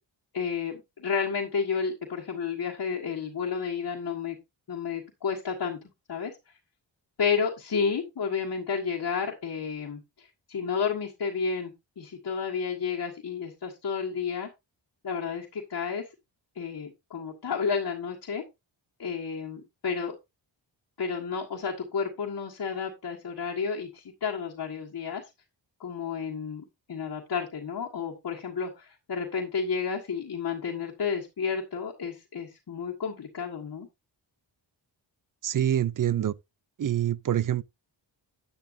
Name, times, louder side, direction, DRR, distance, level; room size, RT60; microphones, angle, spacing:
voice 1, 0.3-4.4 4.7-5.8 6.1-6.3 7.2-14.5 15.0-16.0 16.6-18.4 19.0-20.2 21.0-25.2 25.8-33.9, left 6 dB, 50° left, 1.8 m, -31 dB
voice 2, 35.4-36.3 36.8-37.6, right 10 dB, 45° right, 0.5 m, -26 dB
10.5 x 9.7 x 2.7 m
wide cardioid pair, 155°, 45 cm